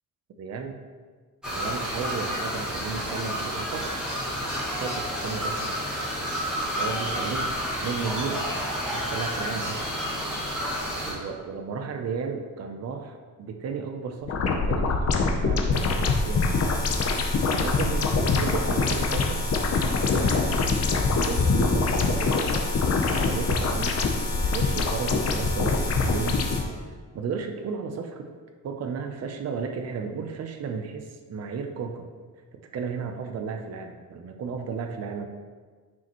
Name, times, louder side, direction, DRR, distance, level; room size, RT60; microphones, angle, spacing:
voice 1, 0.4-0.8 1.5-3.9 4.8-5.7 6.7-8.5 8.9-9.8 11.0-15.1 15.4-16.5 17.5-19.5 20.2-20.7 21.3-22.4 23.1-24.0 24.3-26.4 27.1-28.3 28.6-32.1 32.5-35.3, right 5 dB, 45° right, 4 dB, 0.6 m, -34 dB
sound 1, 1.4-11.1, equal, ahead, 2.0 m, -30 dB
sound 2, 14.2-26.6, left 3 dB, 45° left, 0.7 m, -24 dB
sound 3, 15.7-26.6, left 4 dB, 65° left, 1.4 m, -34 dB
9.3 x 5.0 x 3.0 m, 1.5 s
wide cardioid pair, 155°, 35 cm